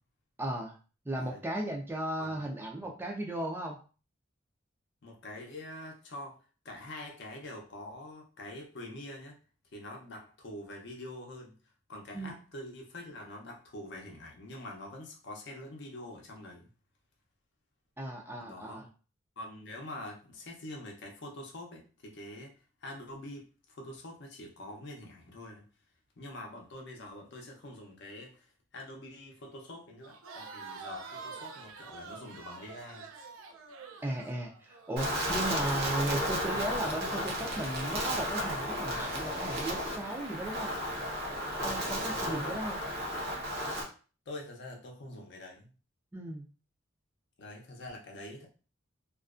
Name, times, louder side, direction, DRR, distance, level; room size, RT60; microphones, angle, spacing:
voice 1, 0.4-0.8 1.1-3.8 12.1-12.3 18.0-18.9 34.0-40.7 41.6-42.8 46.1-46.5, right 1 dB, 10° right, 0 dB, 0.3 m, -36 dB
voice 2, 5.0-6.4 6.6-9.4 9.7-11.6 11.9-16.7 18.4-18.8 19.4-25.7 26.2-33.1 42.2-42.6 44.3-45.7 47.4-48.5, left 1 dB, 60° left, 1 dB, 0.6 m, -45 dB
Crowd, 30.0-35.0, right 4 dB, 90° right, 0.3 m, -46 dB
Wind, 35.0-43.8, equal, 55° right, 0.6 m, -33 dB
2.4 x 2.1 x 2.4 m, 0.36 s
head